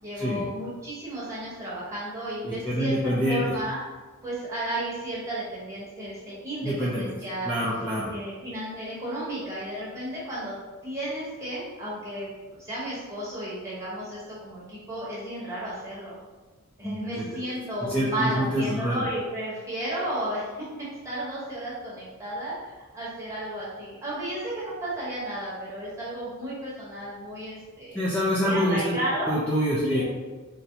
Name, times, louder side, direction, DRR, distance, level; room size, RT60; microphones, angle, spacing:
voice 1, 0.0-3.8 4.2-7.5 8.1-10.6 10.8-12.3 12.6-16.2 16.8-22.5 22.9-28.0 28.4-29.3 29.8-30.0, right 1 dB, 15° right, -9 dB, 1.2 m, -33 dB
voice 2, 2.4-3.4 6.6-7.1 7.4-8.1 16.8-17.3 17.9-19.0 27.9-28.9 29.3-30.0, equal, 5° left, -9 dB, 0.4 m, -26 dB
3.9 x 2.2 x 2.8 m, 1.3 s
head